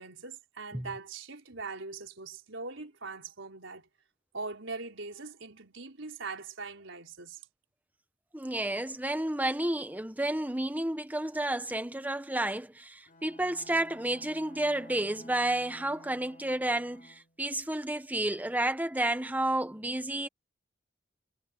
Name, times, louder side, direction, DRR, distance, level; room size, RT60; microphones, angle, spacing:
voice 1, 0.0-3.9 4.3-7.4, right 3 dB, 80° right, 4.4 m, -41 dB
voice 2, 8.3-20.3, right 1 dB, 10° right, 1.2 m, -31 dB
Bowed string instrument, 13.1-17.4, left 1 dB, 45° left, 3.4 m, -54 dB
head